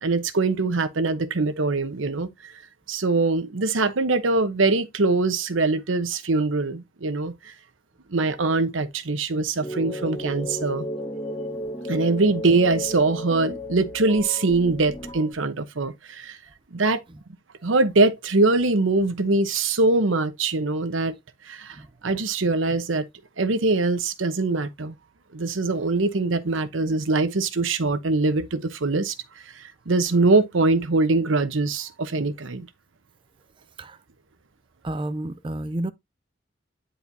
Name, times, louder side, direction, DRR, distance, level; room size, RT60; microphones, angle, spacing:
voice 1, 0.0-2.5 2.9-7.5 8.1-10.9 11.9-16.4 16.7-17.0 17.6-21.2 21.4-21.8 22.0-23.1 23.4-25.0 25.3-29.1 29.5-32.7, right 3 dB, 85° right, 0.9 m, -23 dB
sound 1, 9.6-15.3, left 1 dB, 20° left, 2.2 m, -33 dB
voice 2, 34.8-35.9, right 1 dB, 25° right, 0.4 m, -30 dB
10.5 x 4.4 x 2.7 m
head